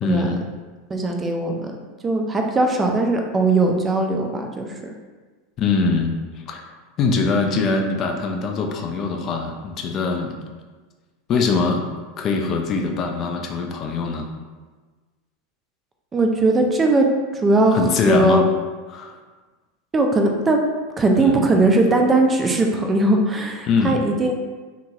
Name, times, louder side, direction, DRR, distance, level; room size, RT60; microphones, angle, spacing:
voice 1, 0.0-0.4 5.6-6.6 7.0-10.4 11.3-11.9 12.2-14.3 17.7-18.5 18.9-19.2 21.2-21.5 23.7-24.0, left 4 dB, 40° left, 3 dB, 0.4 m, -22 dB
voice 2, 0.9-1.7 2.0-4.9 16.1-18.4 19.9-20.6 21.0-24.3, right 2 dB, 25° right, 3 dB, 0.4 m, -19 dB
2.9 x 2.7 x 2.3 m, 1.4 s
hypercardioid pair, 85°, 0 cm